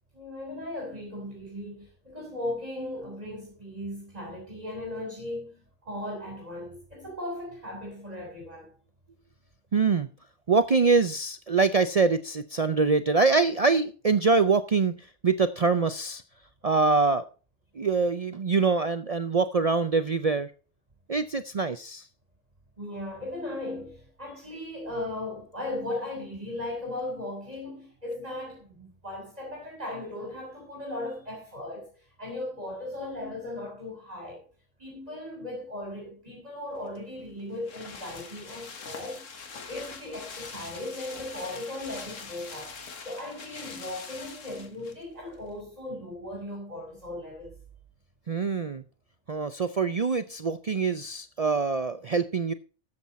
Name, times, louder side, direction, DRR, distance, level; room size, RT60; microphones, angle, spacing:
voice 1, 0.1-8.7 22.8-31.9 32.2-34.5 34.8-39.2 39.7-42.8 43.0-47.6, left 1 dB, 30° right, 3.6 m, -37 dB
voice 2, 9.7-10.1 10.5-14.9 15.2-16.2 16.6-17.3 17.8-20.5 21.1-22.0 48.3-48.8 49.3-52.5, right 4 dB, 50° right, 0.4 m, -24 dB
sound 1, 36.9-45.0 45.3-45.4, left 5 dB, 80° left, 1.8 m, -43 dB
13.0 x 7.9 x 4.1 m
omnidirectional pair, 1.3 m